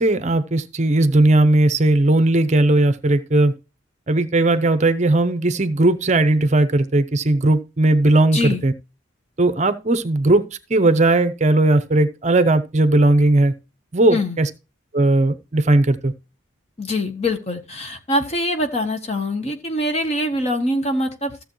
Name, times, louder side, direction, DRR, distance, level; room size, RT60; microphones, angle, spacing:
voice 1, 0.0-3.5 4.1-8.7 9.4-10.4 10.7-13.5 13.9-14.5 14.9-16.1, right 2 dB, 35° right, 0.6 m, -17 dB
voice 2, 8.3-8.7 14.1-14.4 16.8-21.4, left 1 dB, 30° left, 0.9 m, -24 dB
14.5 x 7.1 x 3.0 m
head